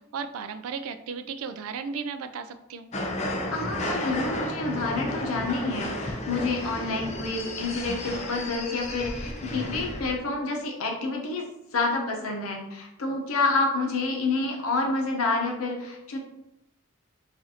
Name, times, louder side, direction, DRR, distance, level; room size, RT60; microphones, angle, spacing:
voice 1, 0.1-2.9, right 5 dB, 80° right, 9 dB, 0.3 m, -35 dB
sound 1, 2.9-10.2, left 1 dB, 30° left, 0.5 m, -33 dB
voice 2, 3.5-16.2, left 3 dB, 80° left, 0 dB, 0.8 m, -28 dB
4.8 x 2.6 x 2.8 m, 0.87 s
head